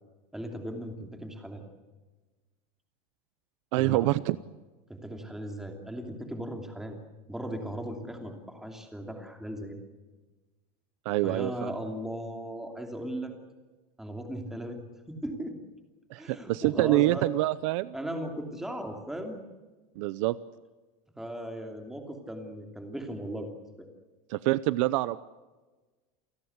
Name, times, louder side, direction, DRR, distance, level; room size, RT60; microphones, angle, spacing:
voice 1, 0.3-1.6 3.8-4.1 4.9-7.0 7.3-9.8 11.2-13.3 14.0-14.8 15.1-15.5 16.2-17.3 17.9-19.4 21.2-23.9, right 1 dB, ahead, 4 dB, 2.8 m, -37 dB
voice 2, 3.7-4.4 11.1-11.7 16.1-17.9 20.0-20.3 24.3-25.2, right 18 dB, 55° right, 16 dB, 0.7 m, -26 dB
29.0 x 18.0 x 8.0 m, 1.3 s
supercardioid pair, 180°, 19 cm